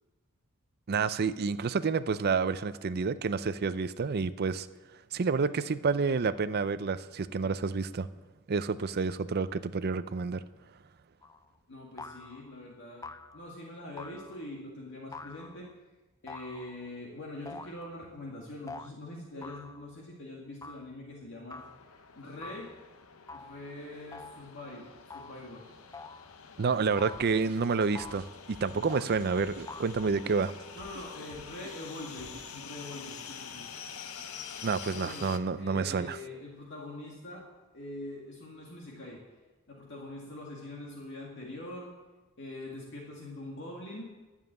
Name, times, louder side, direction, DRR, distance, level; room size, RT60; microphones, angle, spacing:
voice 1, 0.9-4.7 5.1-8.1 8.5-10.4 26.6-30.5 34.6-36.2, right 5 dB, 45° right, 13 dB, 0.5 m, -29 dB
sound 1, 11.2-11.5 12.0-12.5 13.0-13.5 14.0-14.6 15.1-15.7 16.3-17.0 17.5-18.0 18.7-18.9 19.4-20.0 20.6-20.9 21.5-21.8 22.4-22.8 23.3-23.6 24.1-24.5 25.1-25.5 25.9-26.3 27.0-27.4 27.9-28.3 28.9-29.2 29.7-29.9, left 3 dB, 15° left, 0.4 m, -46 dB
voice 2, 11.7-15.7 16.2-21.6 22.2-22.7 23.3-25.7 30.7-33.7 34.9-37.5 37.7-39.2 39.7-41.9 42.4-44.1, left 1 dB, 55° left, -2 dB, 2.0 m, -43 dB
sound 2, 21.6-35.4, left 6 dB, 75° left, 0.8 m, -47 dB
sound 3, 27.1-32.5, right 2 dB, 75° right, 1.1 m, -52 dB
11.0 x 7.3 x 9.2 m, 1.2 s
head